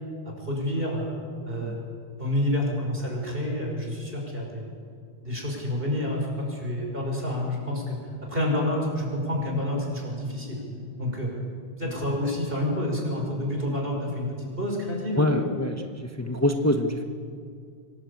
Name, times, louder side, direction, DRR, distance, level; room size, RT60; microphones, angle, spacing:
voice 1, 0.2-1.1 1.5-1.8 2.2-4.7 5.2-10.6 11.0-11.3 11.8-15.4, left 1 dB, 55° right, 0 dB, 6.0 m, -28 dB
voice 2, 15.2-17.0, left 1 dB, 15° left, 4 dB, 1.1 m, -26 dB
25.0 x 19.0 x 8.6 m, 2.2 s
omnidirectional pair, 1.1 m